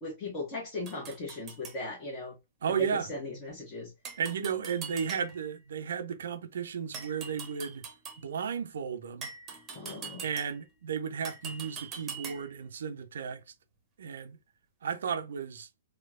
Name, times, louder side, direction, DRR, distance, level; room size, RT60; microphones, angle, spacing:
voice 1, 0.0-2.4 2.7-3.9 9.7-10.2, left 2 dB, 25° left, 1.2 m, -38 dB
sound 1, 0.9-1.8 4.0-5.6 6.9-8.3 9.2-10.7 11.2-12.6, right 5 dB, 20° right, 0.9 m, -43 dB
voice 2, 2.6-3.1 4.2-7.8 8.2-9.3 10.2-13.4 14.0-14.4 14.8-15.7, right 7 dB, 60° right, 0.6 m, -34 dB
4.5 x 2.3 x 2.4 m
figure-of-eight pair, 110°, 0 cm